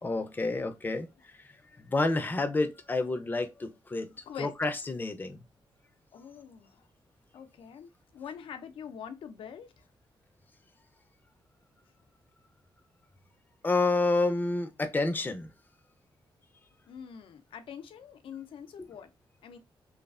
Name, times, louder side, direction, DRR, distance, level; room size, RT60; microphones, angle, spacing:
voice 1, 0.0-1.1 1.9-4.1 4.4-5.4 13.6-15.5 18.8-18.9, left 2 dB, 20° left, 0.4 m, -29 dB
voice 2, 6.1-6.9 7.3-9.8 16.9-19.1 19.4-19.6, left 8 dB, 85° left, 0.5 m, -44 dB
3.1 x 2.3 x 2.3 m
wide cardioid pair, 120°, 9 cm